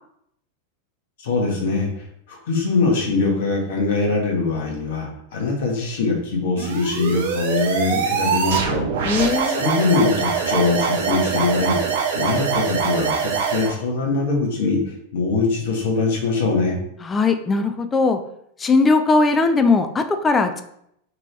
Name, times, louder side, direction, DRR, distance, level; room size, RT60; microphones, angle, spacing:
voice 1, 1.2-1.9 2.3-16.7, left 3 dB, 55° left, -1 dB, 1.0 m, -22 dB
sound 1, 6.6-13.7, right 6 dB, 55° right, 0.6 m, -23 dB
voice 2, 9.1-9.6 17.1-18.2 18.6-20.6, left 3 dB, 15° left, 8 dB, 0.3 m, -19 dB
2.9 x 2.9 x 3.3 m, 0.73 s
figure-of-eight pair, 90°, 0 cm